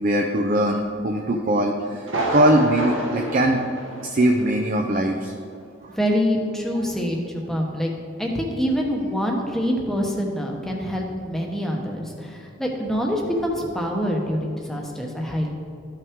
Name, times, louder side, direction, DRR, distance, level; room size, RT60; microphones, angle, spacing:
voice 1, 0.0-3.6 4.0-5.3 5.8-6.0 6.8-6.9, right 1 dB, 40° right, 1 dB, 0.5 m, -21 dB
Thunder, 2.0-4.6 4.9-5.0 5.5-5.6, right 1 dB, 75° right, 1.4 m, -29 dB
voice 2, 6.0-7.9 8.2-15.5, equal, ahead, -1 dB, 1.0 m, -25 dB
13.5 x 5.6 x 3.6 m, 2.2 s
head